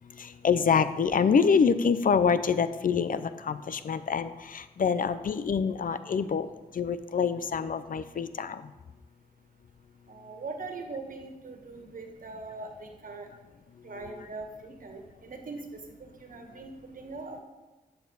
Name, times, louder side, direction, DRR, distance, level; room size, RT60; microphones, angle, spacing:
voice 1, 0.2-6.5 6.7-8.6, left 6 dB, 60° left, 13 dB, 0.5 m, -26 dB
voice 2, 10.1-13.3 13.8-17.4, right 3 dB, 60° right, 3 dB, 1.6 m, -41 dB
12.0 x 7.1 x 4.0 m, 1.1 s
cardioid pair, 60°, 16 cm